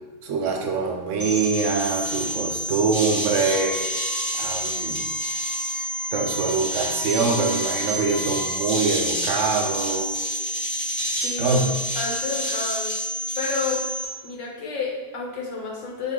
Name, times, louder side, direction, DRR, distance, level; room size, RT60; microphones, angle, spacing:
voice 1, 0.2-3.8 4.4-5.0 6.1-10.1 11.4-11.7, right 4 dB, 80° right, 1 dB, 1.0 m, -24 dB
sound 1, 1.2-14.1, equal, 15° left, 0.9 m, -28 dB
Wind instrument woodwind instrument, 3.4-8.7, right 1 dB, 40° right, 0.6 m, -39 dB
voice 2, 11.1-11.6 11.9-13.0 13.3-13.8 14.2-16.1, left 4 dB, 75° left, -2 dB, 1.1 m, -30 dB
4.1 x 2.3 x 3.6 m, 1.4 s
omnidirectional pair, 1.3 m